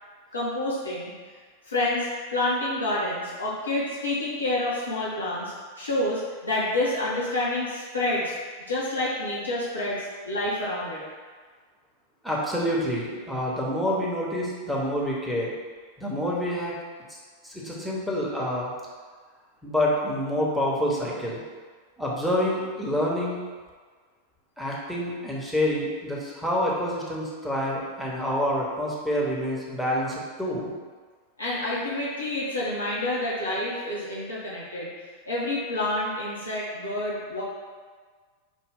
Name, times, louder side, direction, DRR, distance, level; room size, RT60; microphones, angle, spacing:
voice 1, 0.3-1.1 1.7-8.3 8.7-11.0 31.4-34.9 35.3-37.4, left 1 dB, 80° left, -7 dB, 0.8 m, -28 dB
voice 2, 12.2-15.5 16.0-16.8 17.1-17.2 17.4-18.7 19.6-21.4 22.0-23.4 24.6-30.7, equal, ahead, -5 dB, 0.9 m, -27 dB
5.1 x 2.2 x 3.5 m, 1.5 s
figure-of-eight pair, 90°, 0 cm